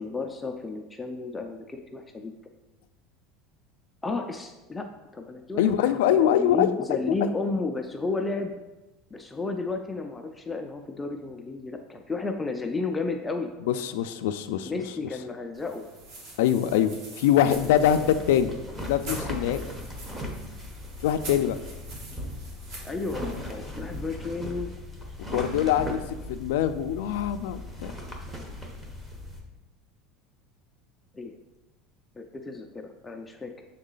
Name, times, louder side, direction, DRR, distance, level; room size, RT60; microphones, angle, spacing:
voice 1, 0.0-2.3 4.0-4.9 5.1-8.5 9.1-13.5 14.6-15.9 22.8-24.7 31.1-31.4 32.2-33.7, left 3 dB, 10° left, 4 dB, 0.4 m, -32 dB
voice 2, 5.6-6.7 13.7-14.7 16.4-18.5 18.8-19.6 21.0-21.6 25.3-26.0 26.3-27.9, left 10 dB, 90° left, 9 dB, 0.3 m, -23 dB
sound 1, 15.5-24.1, right 2 dB, 65° right, 1.8 m, -44 dB
sound 2, 17.5-29.4, left 1 dB, 10° right, 0.8 m, -38 dB
6.4 x 3.9 x 3.8 m, 1.0 s
cardioid pair, 155°, 0 cm